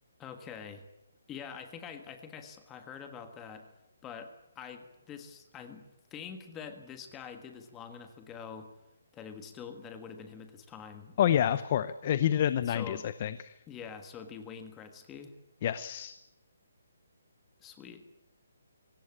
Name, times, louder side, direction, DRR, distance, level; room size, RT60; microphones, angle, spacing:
voice 1, 0.2-0.8 1.3-3.6 4.0-5.8 6.1-8.7 9.1-11.4 12.7-13.0 13.7-15.3 17.6-18.0, left 7 dB, 10° left, 7 dB, 1.5 m, -45 dB
voice 2, 11.2-13.5 15.6-16.1, left 10 dB, 30° left, 14 dB, 0.7 m, -28 dB
24.5 x 18.0 x 8.8 m, 0.95 s
hypercardioid pair, 175°, 0 cm